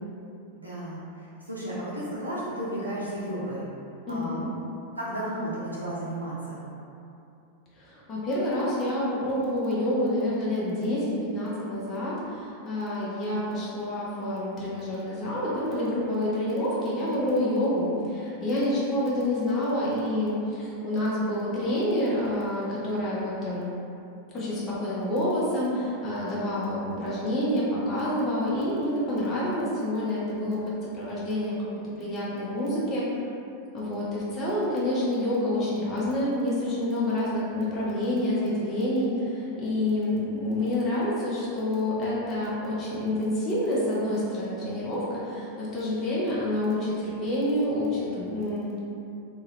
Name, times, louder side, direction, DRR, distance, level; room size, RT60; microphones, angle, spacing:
voice 1, 0.6-1.0 1.4-3.6 4.1-4.4 5.0-6.6, right 1 dB, 85° right, -8 dB, 0.6 m, -33 dB
voice 2, 4.1-4.5 7.8-23.7 24.3-31.6 32.0-33.1 33.7-48.8, left 1 dB, 30° left, -7 dB, 0.6 m, -28 dB
2.3 x 2.0 x 3.0 m, 2.7 s
figure-of-eight pair, 90°, 0 cm